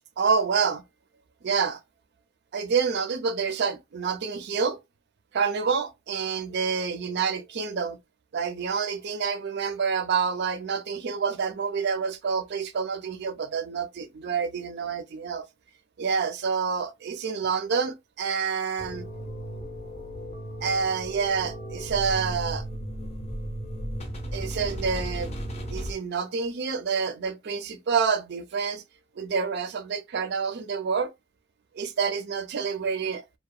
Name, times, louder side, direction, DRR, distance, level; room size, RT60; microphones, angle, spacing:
voice 1, 0.2-0.8 1.4-1.8 2.5-4.8 5.3-8.0 8.3-15.5 16.0-19.0 20.6-22.7 24.3-25.4 25.7-28.8 29.2-31.1 31.7-33.2, right 5 dB, 50° right, 0.4 m, -28 dB
sound 1, 18.8-25.9, equal, 30° left, 0.5 m, -35 dB
2.7 x 2.1 x 2.3 m
head